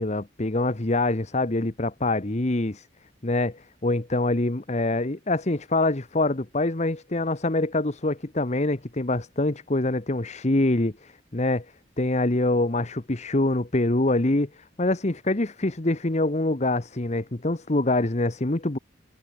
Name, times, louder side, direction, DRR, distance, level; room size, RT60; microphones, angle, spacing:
voice 1, 0.0-2.9 3.2-11.6 12.0-18.8, left 2 dB, 40° left, 1.2 m, -25 dB
head